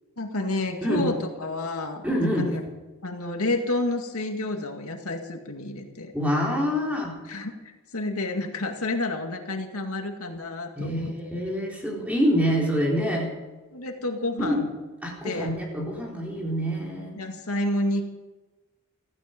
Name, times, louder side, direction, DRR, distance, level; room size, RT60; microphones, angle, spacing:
voice 1, 0.2-2.0 2.4-2.6 3.0-6.1 7.2-11.1 13.7-14.6 15.2-15.5 17.2-18.1, left 2 dB, 85° left, 4 dB, 2.2 m, -29 dB
voice 2, 0.8-1.1 2.0-2.5 6.1-7.1 10.8-13.3 14.4-14.6 15.0-17.1, equal, 5° right, -3 dB, 4.0 m, -26 dB
16.0 x 15.0 x 5.2 m, 1.2 s
head